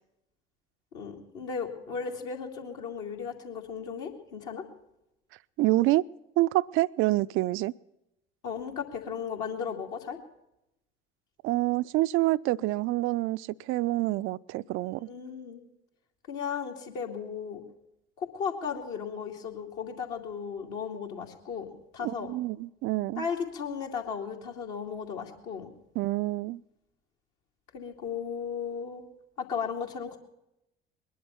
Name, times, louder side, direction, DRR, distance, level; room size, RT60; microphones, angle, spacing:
voice 1, 0.9-4.6 8.4-10.2 15.1-15.6 16.3-17.6 18.2-22.3 23.2-25.7 27.7-29.0 29.4-30.2, left 6 dB, 60° left, 1 dB, 2.5 m, -35 dB
voice 2, 5.6-6.1 6.4-7.7 11.4-15.1 22.0-23.3 26.0-26.6, right 18 dB, 40° right, 16 dB, 0.5 m, -27 dB
21.0 x 11.0 x 5.8 m, 0.87 s
figure-of-eight pair, 60°, 32 cm